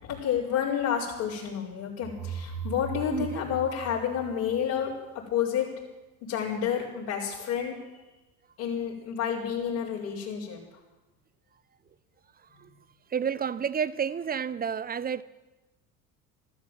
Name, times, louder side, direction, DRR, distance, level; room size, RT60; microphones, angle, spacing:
voice 1, 0.0-5.7 6.2-7.8 8.6-10.6, left 8 dB, 70° left, 5.2 m, -30 dB
sound 1, 2.0-4.9, right 5 dB, 50° right, 1.2 m, -39 dB
voice 2, 3.1-3.4 12.6-12.7 13.1-15.2, right 7 dB, 20° right, 0.6 m, -30 dB
13.5 x 13.0 x 7.6 m
hypercardioid pair, 70°, 45 cm